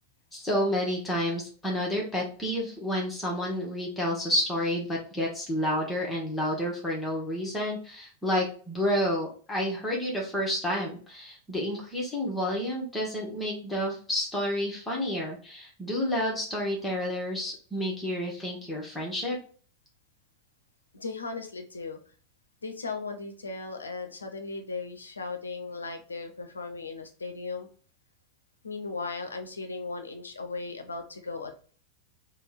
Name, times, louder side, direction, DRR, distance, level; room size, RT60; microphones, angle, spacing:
voice 1, 0.3-19.4, equal, 10° left, -2 dB, 1.1 m, -30 dB
voice 2, 20.9-22.0 22.6-27.7 28.6-31.5, left 4 dB, 75° left, 5 dB, 0.6 m, -37 dB
3.4 x 2.2 x 4.1 m, 0.42 s
figure-of-eight pair, 90°, 0 cm